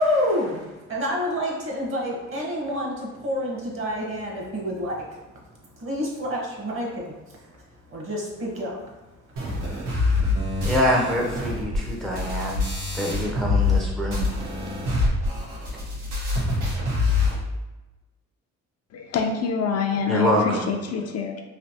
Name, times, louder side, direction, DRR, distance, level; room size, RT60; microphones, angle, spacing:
voice 1, 0.0-4.9 5.8-7.1 7.9-8.8, left 1 dB, 45° right, -2 dB, 1.1 m, -28 dB
sound 1, 9.4-13.8 14.1-17.4, left 3 dB, 90° right, 1.1 m, -25 dB
voice 2, 10.6-12.6 12.9-14.3 20.1-20.7, equal, ahead, -2 dB, 0.5 m, -25 dB
voice 3, 18.9-21.4, left 5 dB, 55° left, 3 dB, 0.5 m, -26 dB
3.3 x 2.8 x 2.7 m, 1.1 s
cardioid pair, 90°, 30 cm